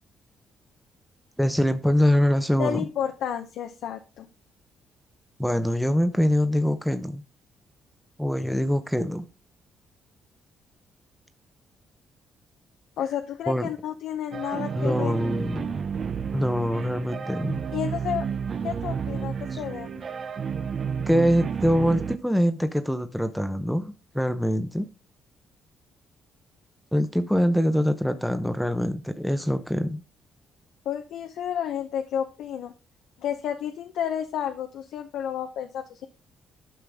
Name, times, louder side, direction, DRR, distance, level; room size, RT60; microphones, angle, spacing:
voice 1, 1.4-2.8 5.4-7.2 8.2-9.3 13.5-13.7 14.8-15.8 16.3-17.6 19.5-19.6 21.1-24.9 26.9-30.0, equal, ahead, 0.8 m, -24 dB
voice 2, 2.6-4.3 13.0-15.1 17.7-18.3 18.6-20.0 30.8-32.7 33.2-36.1, left 9 dB, 80° left, 0.7 m, -31 dB
sound 1, 14.3-22.2, right 6 dB, 50° right, 0.6 m, -31 dB
11.0 x 5.8 x 3.5 m
cardioid pair, 90°, 0 cm